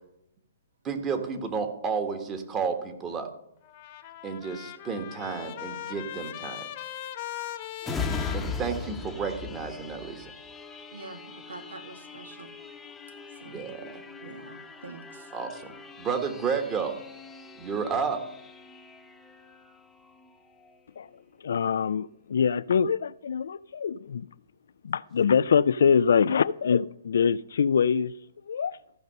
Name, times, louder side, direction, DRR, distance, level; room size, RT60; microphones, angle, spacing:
voice 1, 0.8-3.3 4.2-6.7 8.3-10.3 13.5-14.0 15.3-17.0 17.6-18.2, right 5 dB, 20° right, 1.4 m, -31 dB
Trumpet, 3.6-9.3, left 12 dB, 40° left, 1.1 m, -40 dB
sound 1, 7.8-21.1 21.6-21.7, left 5 dB, 10° left, 0.9 m, -40 dB
voice 2, 10.9-12.5 13.4-13.6 14.2-15.3, right 3 dB, 85° right, 1.8 m, -45 dB
voice 3, 21.4-24.3 24.8-28.1 28.5-28.8, left 6 dB, 70° left, 0.3 m, -24 dB
14.5 x 5.3 x 6.7 m
hypercardioid pair, 140°, 0 cm